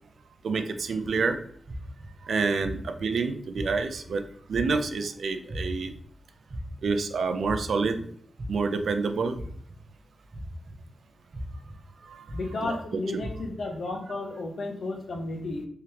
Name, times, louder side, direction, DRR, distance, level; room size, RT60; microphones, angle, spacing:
voice 1, 0.4-1.4 2.3-5.9 6.8-8.1 8.5-9.4 12.0-12.3 12.6-13.0, right 4 dB, 80° right, 8 dB, 0.4 m, -28 dB
sound 1, 1.0-1.1 1.7-2.1 2.6-3.1 3.5-4.0 4.5-4.9 5.5-5.9 6.5-6.9 7.4-7.9 8.4-8.8 9.3-9.8 10.3-10.7 11.3-11.7 12.3-12.7 13.2-13.6, equal, 40° right, 0.7 m, -38 dB
voice 2, 12.3-15.7, left 2 dB, 60° left, 3 dB, 0.8 m, -33 dB
3.6 x 3.4 x 2.8 m, 0.62 s
wide cardioid pair, 170°, 0 cm